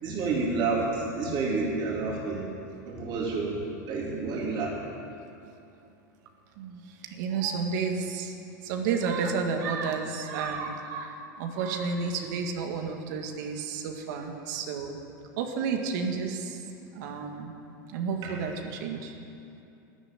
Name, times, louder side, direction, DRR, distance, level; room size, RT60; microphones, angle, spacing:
voice 1, 0.0-2.4 2.9-3.6 3.9-4.7 18.2-18.4, right 3 dB, 50° right, -4 dB, 3.7 m, -29 dB
voice 2, 6.6-8.3 8.6-15.0 15.4-16.6 16.9-17.5 17.9-19.1, right 5 dB, 70° right, 3 dB, 1.9 m, -31 dB
13.0 x 10.5 x 9.4 m, 2.6 s
hypercardioid pair, 105°, 10 cm